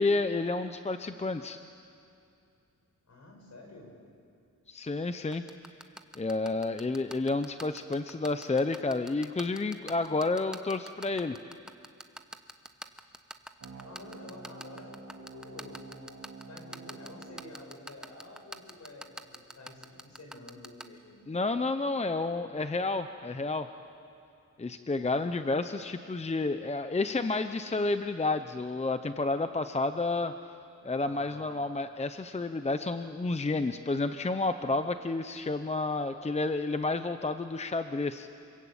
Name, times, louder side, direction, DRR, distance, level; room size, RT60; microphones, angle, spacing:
voice 1, 0.0-1.6 4.7-5.4 6.2-11.4 21.3-23.7 24.6-30.3 30.8-38.3, left 3 dB, 20° left, 9 dB, 0.7 m, -30 dB
voice 2, 3.1-3.9 13.8-16.1 16.4-21.3 31.0-31.5, left 2 dB, 60° left, 1 dB, 6.7 m, -50 dB
sound 1, 5.3-20.8, right 1 dB, ahead, 1.1 m, -42 dB
sound 2, 13.6-18.6, right 3 dB, 60° right, 5.1 m, -49 dB
28.0 x 21.5 x 8.8 m, 2.5 s
wide cardioid pair, 110°, 31 cm